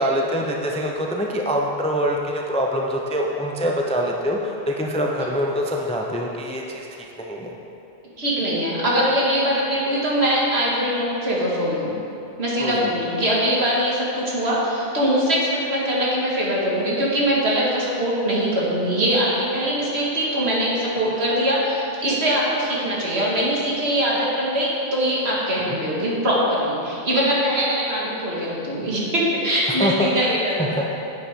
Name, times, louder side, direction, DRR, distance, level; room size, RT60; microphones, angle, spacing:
voice 1, 0.0-7.5 12.6-12.9 21.0-21.1 25.7-25.8 29.7-30.3 30.6-30.9, equal, 10° left, 0 dB, 0.5 m, -25 dB
voice 2, 8.2-11.9 12.4-30.7, equal, 70° right, -5 dB, 2.1 m, -22 dB
10.0 x 8.5 x 3.7 m, 2.8 s
omnidirectional pair, 1.1 m